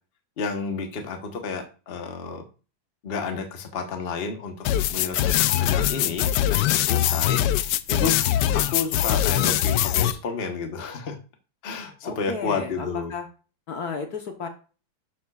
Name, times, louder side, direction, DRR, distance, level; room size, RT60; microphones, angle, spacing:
voice 1, 0.4-2.5 3.0-7.4 7.9-8.2 8.5-11.2 11.6-13.1, left 4 dB, 35° left, 4 dB, 1.1 m, -31 dB
sound 1, 4.6-10.1, left 12 dB, 75° left, 1.1 m, -22 dB
voice 2, 12.0-13.2 13.7-14.5, left 5 dB, 55° left, 5 dB, 1.4 m, -33 dB
11.5 x 7.1 x 2.4 m, 0.35 s
omnidirectional pair, 2.1 m